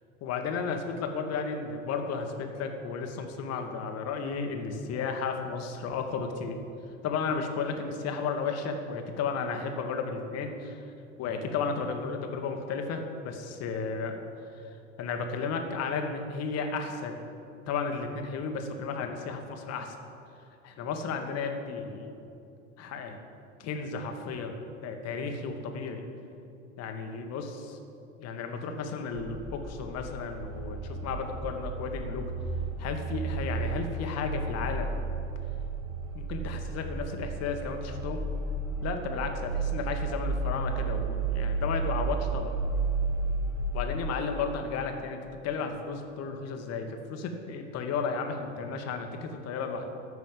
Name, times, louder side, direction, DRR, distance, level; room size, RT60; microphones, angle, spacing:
voice 1, 0.2-6.6 7.0-10.8 11.2-14.1 14.6-17.2 17.7-19.9 20.6-22.1 22.8-23.2 23.6-24.5 24.8-26.0 26.8-27.8 28.2-32.3 32.8-34.9 36.1-38.2 38.8-42.5 43.7-45.2 45.4-49.9, left 5 dB, 40° left, 5 dB, 1.6 m, -33 dB
sound 1, 29.1-43.8, right 3 dB, 45° right, 2.0 m, -33 dB
14.5 x 6.1 x 7.5 m, 2.7 s
figure-of-eight pair, 70°, 37 cm